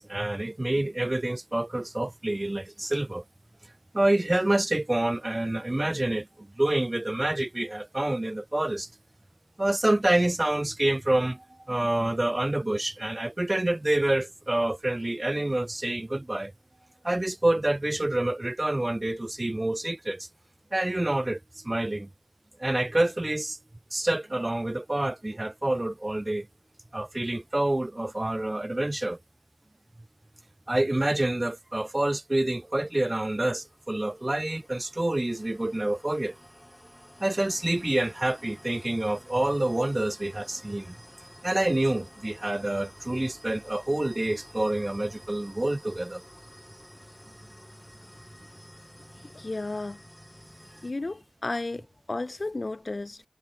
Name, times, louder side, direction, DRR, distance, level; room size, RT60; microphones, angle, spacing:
voice 1, 0.0-3.2 3.9-8.9 9.6-16.5 17.0-20.3 20.7-22.1 22.6-23.6 23.9-26.5 26.9-29.2 30.7-36.4 37.2-40.9 41.4-46.2, right 1 dB, 25° right, 0.8 m, -27 dB
sound 1, 32.9-50.9, equal, 5° left, 2.8 m, -51 dB
voice 2, 49.2-50.0 50.8-53.2, left 2 dB, 40° left, 0.4 m, -33 dB
wide cardioid pair, 75°, 0 cm